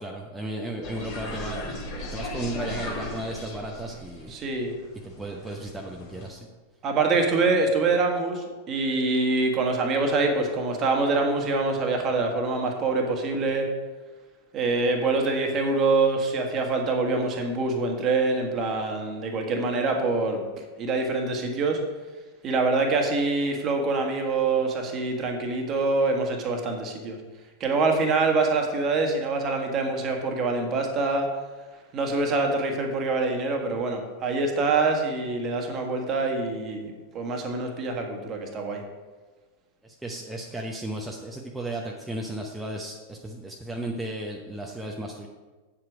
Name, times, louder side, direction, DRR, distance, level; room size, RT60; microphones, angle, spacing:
voice 1, 0.0-4.3 5.0-6.5 39.8-45.3, right 1 dB, 5° right, -1 dB, 0.8 m, -35 dB
sound 1, 0.8-6.3, left 1 dB, 45° left, 2.7 m, -37 dB
voice 2, 4.3-4.7 6.8-13.7 14.5-20.4 20.8-21.8 22.4-27.2 27.6-31.3 31.9-38.8, right 3 dB, 30° right, 3 dB, 1.6 m, -25 dB
8.5 x 7.7 x 4.8 m, 1.3 s
figure-of-eight pair, 90°, 0 cm